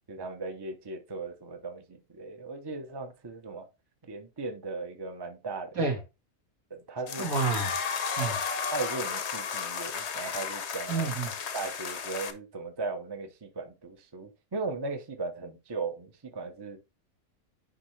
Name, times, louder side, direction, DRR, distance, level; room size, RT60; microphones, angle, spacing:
voice 1, 0.1-1.8 2.1-3.7 4.0-5.8 6.7-7.3 8.7-11.1 11.5-16.8, right 3 dB, 20° right, 0.8 m, -37 dB
sound 1, 7.1-12.3, left 6 dB, 55° left, 1.1 m, -33 dB
voice 2, 7.2-7.7 8.2-8.4 10.9-11.3, right 4 dB, 75° right, 2.4 m, -28 dB
10.0 x 3.6 x 3.2 m
omnidirectional pair, 1.5 m